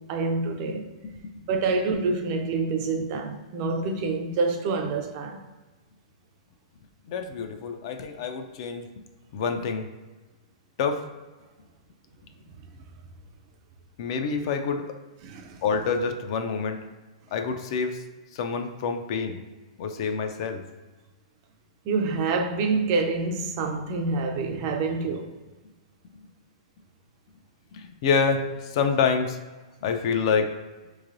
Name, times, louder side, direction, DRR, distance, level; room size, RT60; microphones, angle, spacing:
voice 1, 0.0-0.9 1.5-5.4 15.2-15.6 21.9-25.3, right 3 dB, 40° right, 0.4 m, -27 dB
voice 2, 1.0-1.3 7.1-8.9 9.3-9.9 10.8-11.0 14.0-14.8 15.6-16.8 17.3-18.0 18.3-19.4 19.8-20.6 27.7-29.4 29.8-30.5, left 5 dB, 50° left, 0.4 m, -27 dB
4.5 x 3.1 x 2.5 m
hypercardioid pair, 150°, 3 cm